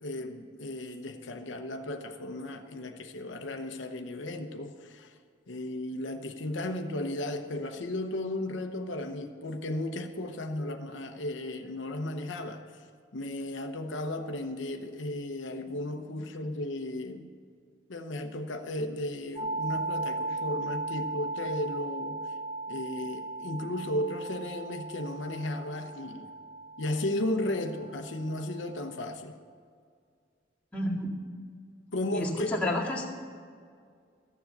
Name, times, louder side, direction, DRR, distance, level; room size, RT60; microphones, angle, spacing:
voice 1, 0.0-5.1 5.5-12.7 13.1-17.3 17.9-22.2 22.7-26.3 26.8-29.4 31.9-32.6, left 1 dB, 85° left, 6 dB, 0.9 m, -35 dB
sound 1, 19.4-29.1, right 3 dB, 35° right, 1.9 m, -37 dB
voice 2, 30.7-31.1 32.1-33.1, left 1 dB, 10° left, -5 dB, 2.1 m, -30 dB
14.0 x 7.2 x 7.8 m, 2.1 s
head